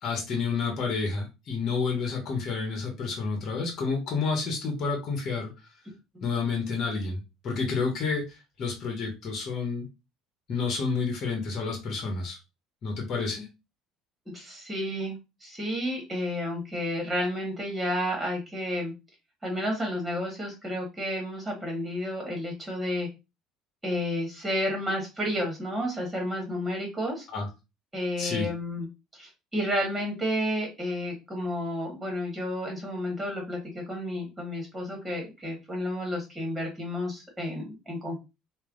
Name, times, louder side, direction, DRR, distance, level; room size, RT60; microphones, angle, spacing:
voice 1, 0.0-5.5 6.2-9.9 10.5-12.4 12.8-13.5 27.3-27.4 28.2-28.5, left 4 dB, 50° left, 2 dB, 1.1 m, -30 dB
voice 2, 14.3-18.9 19.4-23.1 23.8-27.3 27.9-28.9 29.1-38.2, left 1 dB, 10° right, 0 dB, 1.4 m, -31 dB
3.0 x 2.2 x 2.5 m, 0.25 s
supercardioid pair, 80°, 0 cm